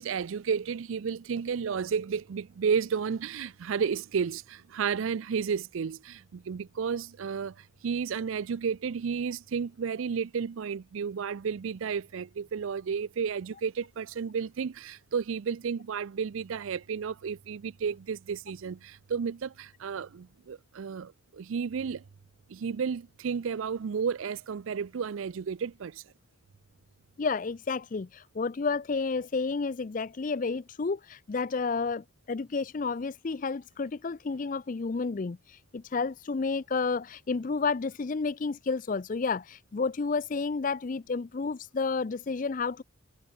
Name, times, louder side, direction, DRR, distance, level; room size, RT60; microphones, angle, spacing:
voice 1, 0.0-7.6 7.8-22.0 22.5-26.0, right 6 dB, 75° right, 0.4 m, -32 dB
voice 2, 27.2-42.8, left 4 dB, 40° left, 0.4 m, -31 dB
head